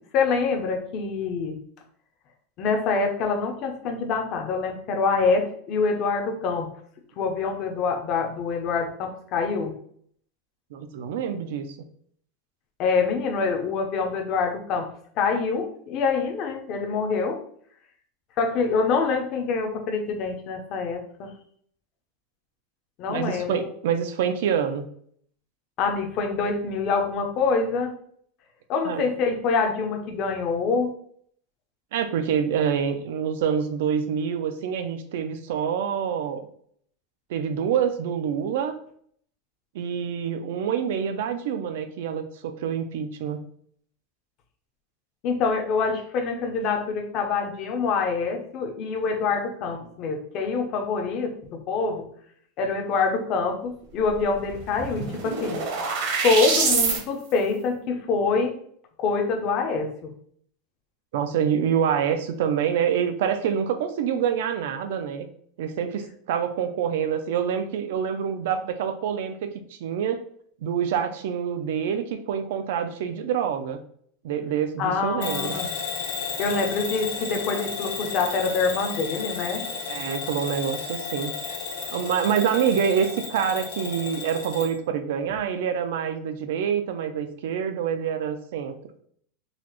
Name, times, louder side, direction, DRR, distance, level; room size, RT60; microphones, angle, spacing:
voice 1, 0.1-1.6 2.6-6.7 7.2-9.7 12.8-14.9 15.2-17.4 18.4-21.3 23.0-23.7 25.8-27.9 28.7-30.9 45.2-52.1 52.6-55.6 56.2-58.5 59.0-60.1 74.8-75.7 76.4-79.6, left 4 dB, 30° left, 3 dB, 0.6 m, -25 dB
voice 2, 10.7-11.7 23.1-24.8 28.9-29.0 31.9-36.5 37.3-38.8 39.7-43.4 61.1-65.3 65.6-70.2 70.6-73.8 74.2-75.5 79.9-81.3 81.9-88.7, right 8 dB, 65° right, 8 dB, 0.4 m, -26 dB
sound 1, 54.1-54.2 54.5-57.0, right 4 dB, 50° right, 0.8 m, -25 dB
Bell / Alarm, 75.2-84.7, left 5 dB, 70° left, 0.9 m, -33 dB
3.9 x 2.4 x 3.0 m, 0.63 s
supercardioid pair, 175°, 0 cm